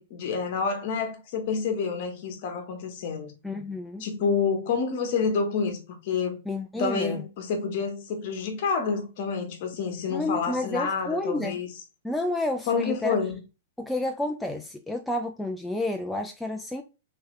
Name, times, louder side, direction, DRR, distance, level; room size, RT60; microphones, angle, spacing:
voice 1, 0.0-3.3 4.0-6.4 6.8-11.7 12.7-13.4, left 5 dB, 45° left, 1.2 m, -28 dB
voice 2, 3.4-4.0 6.5-7.2 10.1-11.6 12.0-13.2 13.8-16.8, left 2 dB, 5° left, 0.3 m, -30 dB
3.4 x 3.2 x 3.1 m
hypercardioid pair, 155°, 0 cm